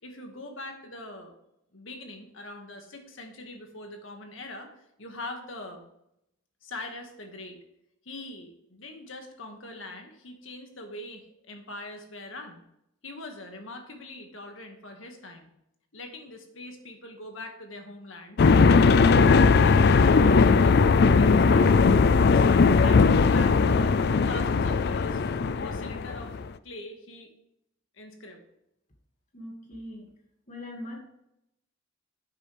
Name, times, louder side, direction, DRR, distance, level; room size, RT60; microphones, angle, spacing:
voice 1, 0.0-1.3 1.7-5.8 6.6-7.6 8.1-12.6 13.0-15.5 15.9-18.4 18.8-21.7 22.0-22.5 22.7-23.9 24.3-25.2 25.6-26.4 26.6-27.3 28.0-28.4, left 2 dB, 80° left, 4 dB, 1.9 m, -42 dB
sound 1, 18.4-26.4, left 4 dB, 55° left, 0.4 m, -19 dB
voice 2, 29.3-30.1 30.5-31.0, left 1 dB, 40° left, 1 dB, 2.3 m, -40 dB
10.0 x 8.1 x 3.4 m, 0.80 s
head